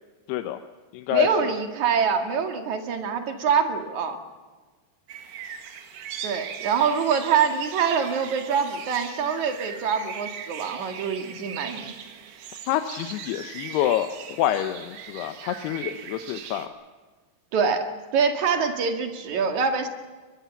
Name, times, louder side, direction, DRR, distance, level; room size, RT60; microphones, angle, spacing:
voice 1, 0.3-0.6 0.9-1.5 12.7-16.7, left 11 dB, 75° left, 8 dB, 2.8 m, -27 dB
voice 2, 1.1-4.2 6.2-11.9 17.5-19.9, right 6 dB, 50° right, 5 dB, 2.9 m, -25 dB
sound 1, 5.1-16.7, right 8 dB, 70° right, 3.8 m, -39 dB
23.0 x 22.5 x 7.2 m, 1.4 s
omnidirectional pair, 5.0 m